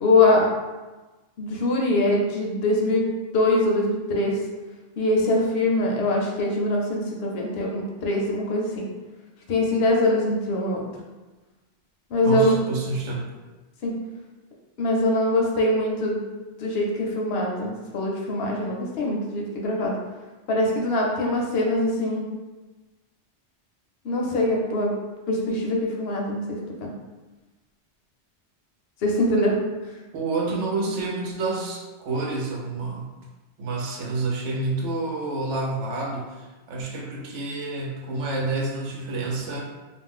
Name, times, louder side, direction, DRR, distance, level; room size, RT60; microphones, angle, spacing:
voice 1, 0.0-0.5 1.4-3.0 3.3-4.4 5.0-8.9 9.5-10.8 12.1-12.6 13.8-13.9 14.8-16.3 16.6-20.0 20.5-22.3 24.0-24.9 25.3-26.9 29.0-29.6, left 1 dB, 65° left, -1 dB, 0.8 m, -23 dB
voice 2, 12.2-13.3 30.1-33.2 33.6-39.6, right 3 dB, 85° right, -1 dB, 0.9 m, -28 dB
2.4 x 2.0 x 3.6 m, 1.2 s
omnidirectional pair, 1.2 m